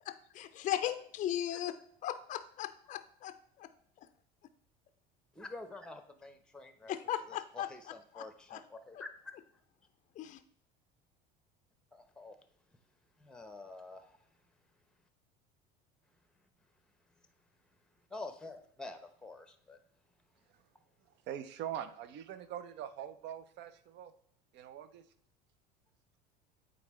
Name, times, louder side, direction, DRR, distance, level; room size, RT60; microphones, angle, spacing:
voice 1, 0.3-1.8 2.0-3.7 6.9-8.2 8.5-8.6 10.2-10.4, left 11 dB, 35° left, 10 dB, 0.4 m, -37 dB
voice 2, 5.3-6.9 7.3-9.4 11.9-12.4 13.2-14.2 18.1-19.8, left 2 dB, 5° left, 8 dB, 0.8 m, -48 dB
voice 3, 21.3-24.1 24.5-25.0, right 10 dB, 55° right, 12 dB, 0.6 m, -43 dB
8.4 x 3.8 x 3.2 m, 0.65 s
hypercardioid pair, 80°, 21 cm